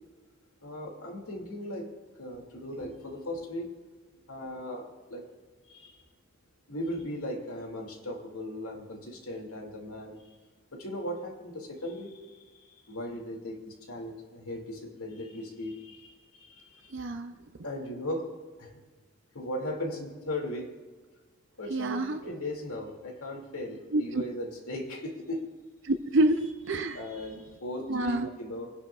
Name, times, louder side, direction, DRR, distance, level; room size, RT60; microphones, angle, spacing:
voice 1, 0.6-1.9 2.2-3.7 4.3-5.2 5.7-6.0 6.7-10.2 10.7-17.0 17.6-18.3 18.6-18.8 19.3-20.7 21.6-25.4 26.8-28.7, left 1 dB, 75° left, 1 dB, 2.5 m, -38 dB
voice 2, 16.9-17.3 21.7-22.2 23.9-24.0 25.8-27.0 27.9-28.3, right 1 dB, 55° right, 7 dB, 0.5 m, -27 dB
26.0 x 10.5 x 2.4 m, 1.4 s
head